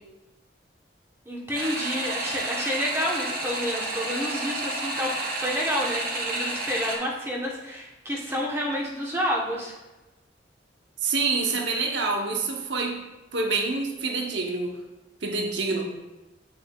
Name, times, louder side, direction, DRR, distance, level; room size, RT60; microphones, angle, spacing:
voice 1, 1.3-9.8, equal, 15° right, -2 dB, 1.0 m, -29 dB
sound 1, 1.5-7.0, right 2 dB, 50° right, 1.2 m, -30 dB
voice 2, 11.0-13.0 13.3-14.7 15.2-15.9, right 3 dB, 75° right, 1 dB, 0.9 m, -27 dB
9.0 x 5.4 x 2.3 m, 1.1 s
head